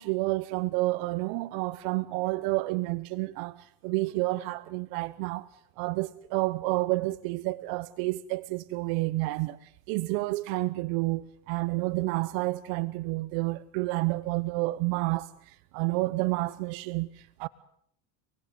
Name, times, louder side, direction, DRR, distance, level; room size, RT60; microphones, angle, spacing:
voice 1, 0.0-5.5 5.8-17.5, right 21 dB, 65° right, 1.1 m, -30 dB
29.5 x 19.5 x 9.2 m
supercardioid pair, 130°, 38 cm